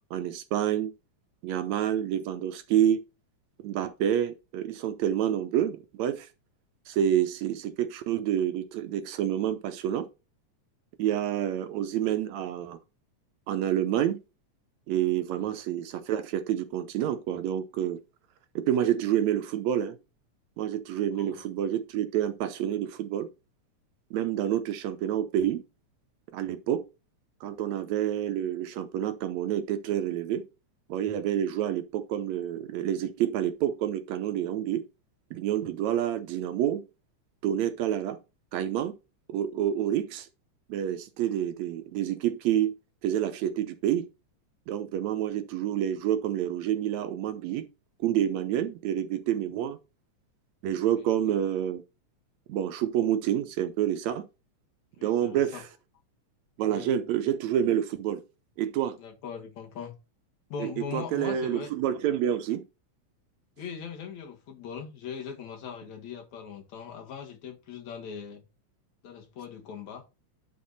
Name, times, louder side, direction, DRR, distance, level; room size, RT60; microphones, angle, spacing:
voice 1, 0.1-0.9 1.4-3.0 3.6-6.3 6.9-10.1 11.0-12.8 13.5-14.2 14.9-18.0 18.6-20.0 20.6-23.3 24.1-25.6 26.3-26.8 27.4-30.4 30.9-34.8 35.3-36.8 37.4-38.2 38.5-38.9 39.3-40.3 40.7-42.8 43.0-44.1 44.7-47.7 48.0-49.8 50.6-51.8 52.5-54.2 55.0-55.6 56.6-58.2 58.6-59.0 60.6-62.6, right 10 dB, 75° right, 2.0 m, -28 dB
voice 2, 21.1-21.4 51.0-51.1 55.0-55.6 56.6-56.9 59.0-59.9 60.5-61.7 63.6-68.4 69.0-70.0, left 6 dB, 75° left, 3.0 m, -40 dB
10.5 x 4.0 x 4.1 m
omnidirectional pair, 3.3 m